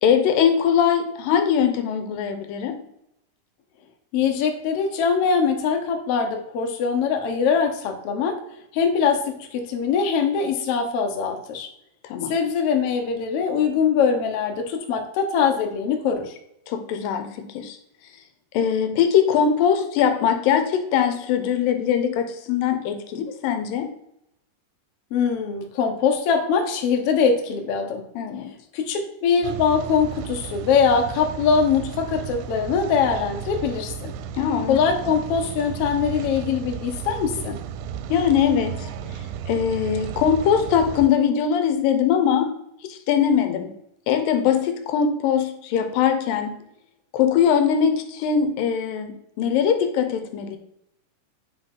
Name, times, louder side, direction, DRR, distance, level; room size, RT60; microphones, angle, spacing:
voice 1, 0.0-2.9 12.0-12.3 16.7-17.8 18.5-23.9 28.2-28.5 34.4-34.8 38.1-38.9 39.5-42.5 42.8-43.7 44.1-46.6 47.1-50.6, left 8 dB, 80° left, 7 dB, 2.5 m, -21 dB
voice 2, 4.1-8.4 8.7-11.7 12.3-16.3 25.1-28.1 28.7-34.1 34.7-37.6, left 6 dB, 65° left, 3 dB, 1.5 m, -22 dB
Rain, 29.4-41.1, right 7 dB, 80° right, 2.0 m, -34 dB
9.9 x 3.6 x 5.5 m, 0.78 s
omnidirectional pair, 4.0 m